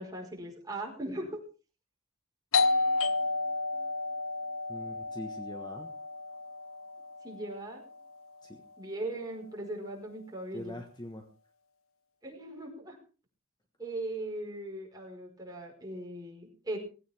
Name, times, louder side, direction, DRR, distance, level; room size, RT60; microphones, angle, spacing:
voice 1, 0.0-1.4 7.2-7.8 8.8-10.8 12.2-13.0 13.8-16.8, right 1 dB, 20° right, 0 dB, 4.7 m, -39 dB
Doorbell, 2.5-7.9, left 3 dB, 75° left, 0.7 m, -31 dB
voice 2, 4.7-5.9 8.4-8.6 10.5-11.3, left 1 dB, 20° left, 5 dB, 1.3 m, -43 dB
18.0 x 16.5 x 3.5 m, 0.35 s
head